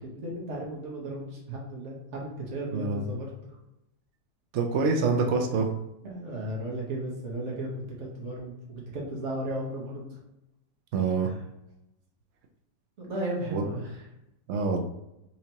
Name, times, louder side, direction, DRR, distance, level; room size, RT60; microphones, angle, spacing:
voice 1, 0.0-3.6 6.0-7.7 8.0-10.2 11.2-11.4 13.0-14.0, right 1 dB, 50° right, -3 dB, 1.2 m, -35 dB
voice 2, 2.7-3.0 4.5-5.7 10.9-11.3 13.5-13.6 14.5-14.8, right 4 dB, 85° right, 3 dB, 0.6 m, -25 dB
4.4 x 2.8 x 2.9 m, 0.86 s
omnidirectional pair, 1.8 m